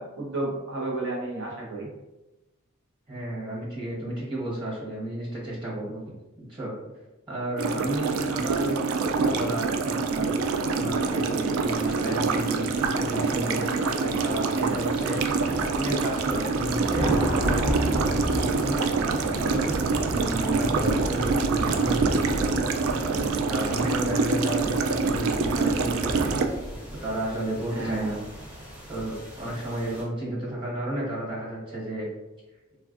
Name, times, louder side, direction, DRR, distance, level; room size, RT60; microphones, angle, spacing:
voice 1, 0.0-1.9 27.7-28.1, right 2 dB, 60° right, -3 dB, 0.8 m, -32 dB
voice 2, 3.1-6.0 6.5-6.7 7.3-8.8 9.1-10.3 10.7-15.2 15.7-17.1 18.3-19.7 20.1-22.5 23.0-26.4 27.0-28.2 28.9-32.1, right 1 dB, 25° right, -5 dB, 1.0 m, -32 dB
sound 1, 7.6-26.5, right 4 dB, 80° right, 0.3 m, -26 dB
sound 2, 11.6-30.0, equal, 5° right, 0.6 m, -34 dB
3.4 x 2.4 x 2.4 m, 1.0 s
head